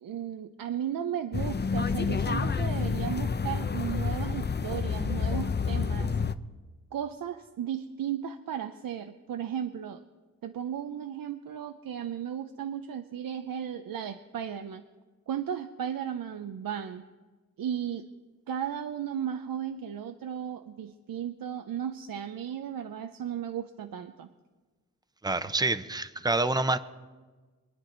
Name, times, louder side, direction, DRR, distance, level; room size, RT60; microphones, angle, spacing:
voice 1, 0.0-6.2 6.9-10.0 10.4-14.8 15.3-17.0 17.6-18.1 18.5-24.3, right 9 dB, 80° right, 8 dB, 0.7 m, -35 dB
sound 1, 1.3-6.3, left 5 dB, 30° left, 0.6 m, -29 dB
voice 2, 25.2-26.8, right 2 dB, 10° right, 12 dB, 0.8 m, -27 dB
23.5 x 9.7 x 3.9 m, 1.3 s
cardioid pair, 55°, 34 cm